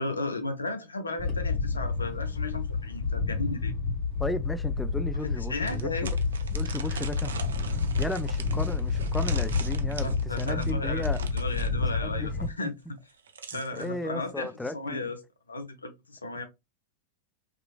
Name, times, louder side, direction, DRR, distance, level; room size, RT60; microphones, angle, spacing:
voice 1, 0.0-3.7 5.2-6.1 10.0-11.1 11.3-12.7 13.5-15.2 15.5-16.4, left 2 dB, 75° left, 0.5 m, -34 dB
Wind, 1.2-12.5, left 4 dB, 40° left, 1.4 m, -29 dB
voice 2, 4.2-5.9 6.5-7.4 7.7-11.2 12.0-12.8 13.5-15.1, left 1 dB, 5° left, 0.3 m, -35 dB
sound 1, 4.2-4.3 4.7-4.8 5.7-11.7 13.0-13.9, right 6 dB, 65° right, 0.4 m, -42 dB
3.0 x 2.4 x 2.3 m
figure-of-eight pair, 90°, 0 cm